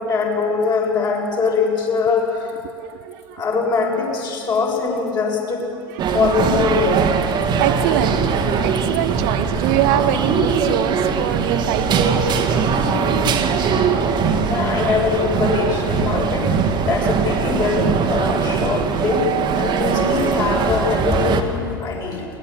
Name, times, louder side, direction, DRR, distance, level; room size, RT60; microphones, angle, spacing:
voice 1, 0.0-2.6 3.3-5.6 6.1-6.9 12.7-13.0 14.4-19.3 19.5-22.3, left 4 dB, 35° left, -2 dB, 6.8 m, -22 dB
voice 2, 2.6-3.4 5.9-6.1 7.6-8.3 8.6-13.1, right 13 dB, 55° right, 12 dB, 0.8 m, -25 dB
sound 1, 6.0-21.4, right 5 dB, 40° right, 1.8 m, -20 dB
22.0 x 19.0 x 8.7 m, 2.4 s
figure-of-eight pair, 75°, 12 cm